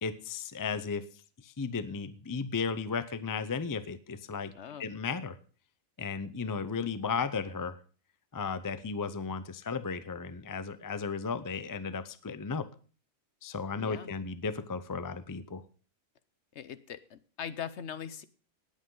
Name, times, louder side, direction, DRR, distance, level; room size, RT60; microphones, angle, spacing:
voice 1, 0.0-4.5 4.8-5.4 6.0-7.8 8.3-12.7 13.4-15.6, left 5 dB, 25° left, 13 dB, 0.4 m, -35 dB
voice 2, 4.5-4.9 13.8-14.2 16.5-18.2, left 8 dB, 60° left, 14 dB, 0.9 m, -41 dB
18.5 x 8.4 x 3.8 m, 0.40 s
omnidirectional pair, 1.5 m